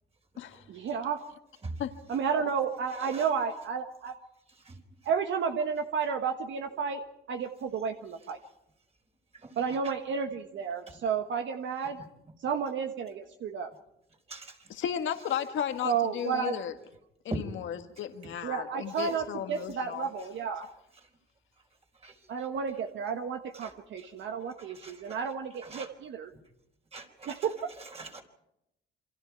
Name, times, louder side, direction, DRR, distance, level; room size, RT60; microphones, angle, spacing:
voice 1, 0.7-1.2 2.1-4.1 5.0-7.0 7.3-8.4 9.6-12.0 12.4-13.7 15.8-16.6 18.4-20.7 22.3-26.3 27.3-27.7, right 6 dB, 70° right, 1.4 m, -32 dB
voice 2, 14.7-16.7 17.3-20.1, left 9 dB, 75° left, 1.7 m, -34 dB
voice 3, 26.9-27.3 28.0-28.2, right 3 dB, 30° right, 4.1 m, -38 dB
28.0 x 24.5 x 4.7 m
cardioid pair, 90°, 20 cm